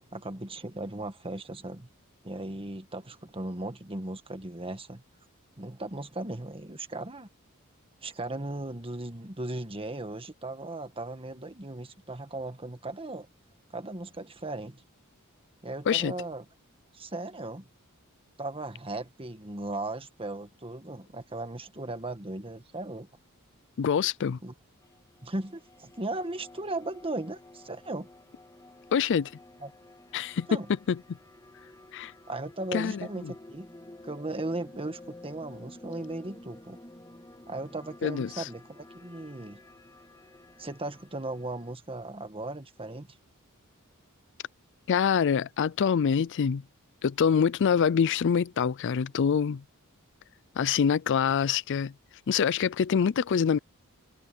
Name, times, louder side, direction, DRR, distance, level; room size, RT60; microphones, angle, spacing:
voice 1, 0.0-1.9 2.2-5.0 5.6-7.3 8.0-13.3 13.7-14.8 15.6-16.4 16.9-17.7 18.4-23.1 24.4-24.5 25.2-28.1 29.6-29.7 30.5-30.7 32.3-33.7 34.0-36.8 37.5-39.6 40.6-43.1, right 2 dB, 25° right, 1.6 m, -37 dB
voice 2, 23.8-24.4 28.9-29.3 30.1-30.5 30.9-31.0 31.9-32.1 32.7-33.3 38.0-38.5 44.9-46.6 47.0-49.6 50.6-51.9 52.3-53.6, left 7 dB, 55° left, 0.4 m, -25 dB
sound 1, 24.8-41.7, left 1 dB, 15° left, 2.9 m, -51 dB
head